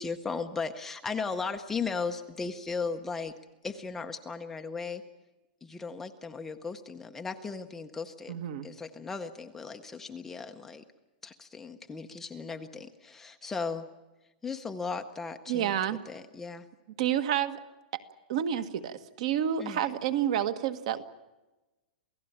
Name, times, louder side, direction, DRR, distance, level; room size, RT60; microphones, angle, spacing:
voice 1, 0.0-3.3 3.6-5.0 5.6-8.4 8.6-10.8 11.2-13.9 14.4-15.8 16.1-16.7 19.6-19.8, left 4 dB, 5° left, 5 dB, 0.7 m, -36 dB
voice 2, 8.3-8.7 15.5-16.0 17.0-17.6 17.9-18.0 18.3-21.0, right 10 dB, 45° right, 11 dB, 1.6 m, -29 dB
28.0 x 17.0 x 8.9 m, 1.1 s
supercardioid pair, 180°, 5 cm